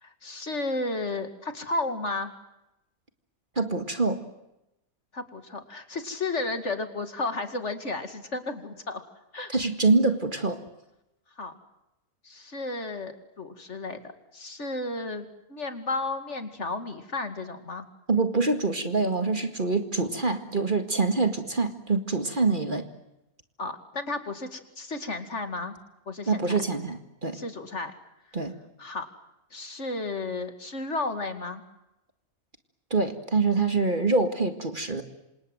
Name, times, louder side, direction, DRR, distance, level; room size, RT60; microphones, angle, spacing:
voice 1, 0.0-2.3 5.1-9.0 9.3-9.5 11.4-11.6 12.2-17.9 23.6-25.7 26.1-26.6 27.3-27.9 28.8-29.1 29.5-31.6, left 2 dB, 50° left, 8 dB, 2.7 m, -33 dB
voice 2, 3.6-4.2 9.5-10.6 18.1-22.9 26.3-27.4 28.3-28.5 32.9-35.0, right 3 dB, 35° right, 7 dB, 2.0 m, -25 dB
27.5 x 27.0 x 7.8 m, 0.90 s
omnidirectional pair, 1.5 m